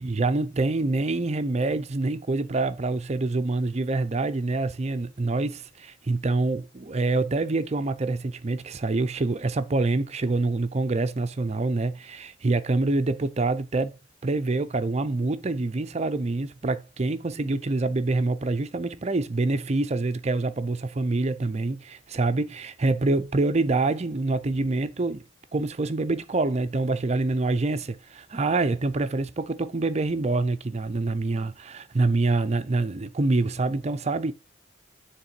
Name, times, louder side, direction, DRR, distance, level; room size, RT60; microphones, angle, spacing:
voice 1, 0.0-14.0 14.2-25.2 25.5-34.3, right 3 dB, 35° right, 0.5 m, -26 dB
6.7 x 3.3 x 4.5 m
head